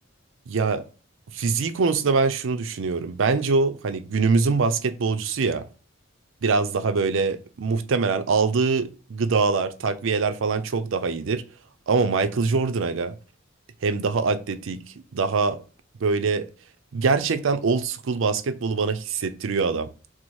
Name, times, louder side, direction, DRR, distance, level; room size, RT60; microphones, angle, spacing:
voice 1, 0.5-0.8 1.3-5.7 6.4-11.4 11.9-13.1 13.8-14.8 15.1-15.6 16.0-16.5 16.9-19.9, right 4 dB, 65° right, 0.5 m, -23 dB
4.6 x 2.0 x 4.1 m
head